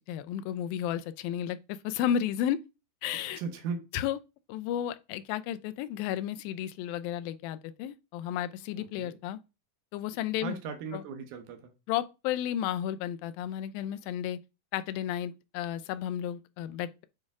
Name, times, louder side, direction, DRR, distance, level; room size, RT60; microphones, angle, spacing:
voice 1, 0.1-2.6 3.0-3.4 3.9-4.2 4.5-9.4 9.9-10.6 10.9-11.0 11.9-14.4 14.7-17.1, left 10 dB, 90° left, 2.3 m, -33 dB
voice 2, 3.3-3.9 8.8-9.2 10.4-11.7, right 5 dB, 70° right, 2.1 m, -37 dB
8.3 x 3.2 x 3.6 m
omnidirectional pair, 4.0 m